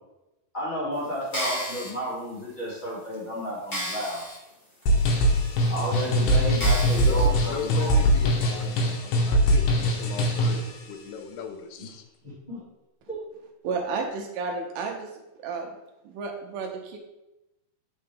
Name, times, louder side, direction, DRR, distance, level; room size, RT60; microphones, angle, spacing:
voice 1, 0.5-4.2 5.7-8.0 12.2-12.6, equal, 20° left, -8 dB, 1.3 m, -32 dB
sound 1, 1.2-1.9 2.6-2.7 3.1-3.2 3.7-4.4 4.8-4.9 5.7-5.8 6.6-7.3 7.8-7.9, equal, 55° left, 0.6 m, -32 dB
sound 2, 4.9-10.7, equal, 70° left, 2.5 m, -22 dB
voice 2, 7.0-12.0, left 6 dB, 90° left, 6 dB, 2.8 m, -38 dB
voice 3, 13.6-15.1 15.4-15.7 16.1-17.0, right 4 dB, 80° right, 2 dB, 2.3 m, -31 dB
8.5 x 4.4 x 3.3 m, 0.96 s
omnidirectional pair, 4.5 m